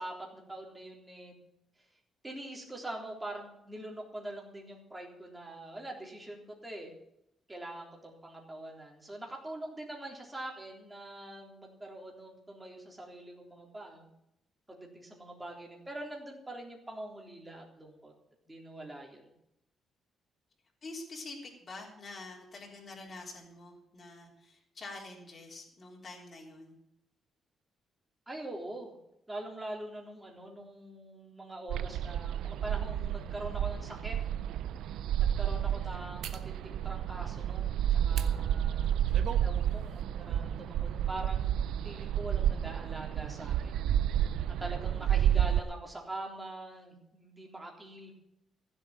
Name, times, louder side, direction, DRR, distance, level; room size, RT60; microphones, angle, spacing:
voice 1, 0.0-1.3 2.2-6.9 7.5-14.1 14.7-18.1 18.5-19.2 28.3-28.9 29.3-34.2 35.2-39.0 39.4-43.7 44.6-48.1, right 1 dB, 10° right, 0 dB, 3.6 m, -43 dB
voice 2, 20.8-26.8, left 2 dB, 35° left, -2 dB, 3.6 m, -46 dB
sound 1, 31.7-45.6, right 10 dB, 90° right, 0.5 m, -30 dB
sound 2, 34.1-34.3 36.2-36.5 38.1-38.3 38.8-39.5 39.8-40.0, right 8 dB, 75° right, 1.2 m, -41 dB
15.5 x 7.8 x 8.9 m, 0.81 s
cardioid pair, 140°, 0 cm